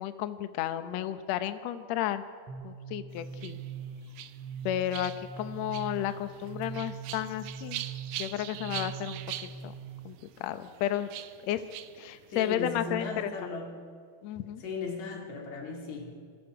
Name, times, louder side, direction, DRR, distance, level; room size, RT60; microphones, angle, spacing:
voice 1, 0.0-2.2 2.6-3.6 4.6-7.8 8.2-9.2 9.6-9.7 10.0-11.1 11.4-11.6 12.0-13.3 14.2-14.6, left 12 dB, 80° left, 10 dB, 1.5 m, -32 dB
sound 1, 2.5-10.0, right 7 dB, 40° right, 2.8 m, -42 dB
sound 2, 3.1-12.6, right 13 dB, 80° right, 1.7 m, -43 dB
voice 2, 12.3-13.7 14.6-16.1, left 4 dB, 55° left, 0 dB, 3.6 m, -36 dB
28.0 x 21.0 x 4.9 m, 2.1 s
omnidirectional pair, 4.3 m